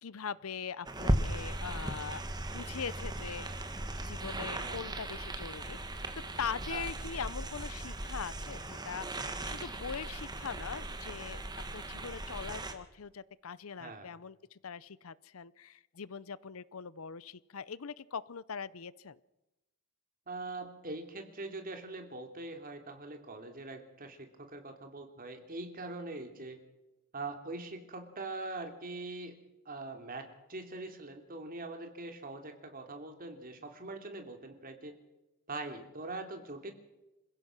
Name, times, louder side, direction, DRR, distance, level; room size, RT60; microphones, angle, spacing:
voice 1, 0.0-2.2 2.5-3.5 4.0-5.8 6.4-11.4 11.7-19.2, left 6 dB, 85° left, 19 dB, 0.7 m, -41 dB
sound 1, 0.9-12.7, right 1 dB, 20° right, 1.8 m, -37 dB
voice 2, 4.5-4.8 6.7-6.9 13.8-14.1 20.3-26.6 27.1-29.4 29.6-34.9 35.5-36.7, right 2 dB, 45° right, 5 dB, 3.0 m, -42 dB
27.5 x 16.0 x 6.1 m, 0.98 s
head